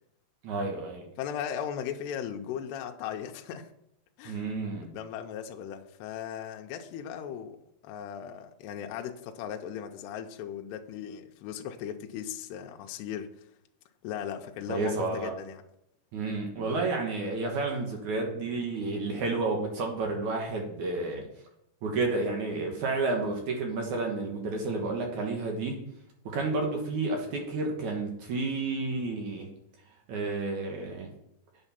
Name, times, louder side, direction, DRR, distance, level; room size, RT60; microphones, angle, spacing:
voice 1, 0.4-1.0 4.3-4.9 14.7-15.3 16.1-21.3 21.8-25.8 26.3-29.5 30.1-31.1, right 3 dB, 65° right, 2.0 m, -31 dB
voice 2, 1.2-3.7 4.2-4.4 4.8-7.6 7.8-13.3 14.0-15.6, left 9 dB, 80° left, 2.7 m, -37 dB
8.9 x 6.5 x 5.6 m
omnidirectional pair, 5.2 m